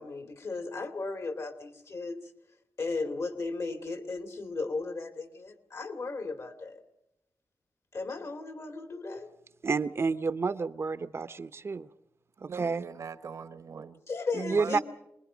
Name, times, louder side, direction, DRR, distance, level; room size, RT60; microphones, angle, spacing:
voice 1, 0.0-2.3 2.8-6.8 7.9-9.3 14.1-14.8, left 3 dB, 60° left, 7 dB, 2.6 m, -36 dB
voice 2, 9.6-11.9 12.4-12.8 14.3-14.8, right 4 dB, 50° right, 12 dB, 0.8 m, -30 dB
voice 3, 12.4-14.0 14.5-14.8, right 6 dB, 70° right, 12 dB, 1.2 m, -42 dB
26.5 x 20.5 x 5.1 m, 0.86 s
cardioid pair, 85°, 6 cm